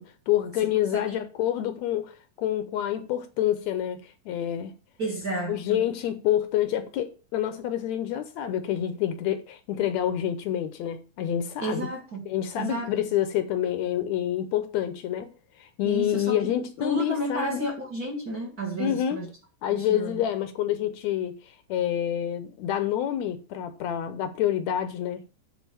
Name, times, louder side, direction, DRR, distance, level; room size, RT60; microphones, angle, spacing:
voice 1, 0.0-2.1 2.4-4.7 5.5-11.9 12.3-15.3 15.6-17.7 18.8-19.2 19.6-21.4 21.7-25.2, left 11 dB, 75° left, 1.8 m, -27 dB
voice 2, 0.9-1.2 5.0-5.8 11.6-12.3 12.6-12.9 15.8-16.4 16.8-19.3 19.7-20.2, right 1 dB, 45° right, 1.3 m, -31 dB
8.2 x 4.1 x 6.8 m
omnidirectional pair, 3.5 m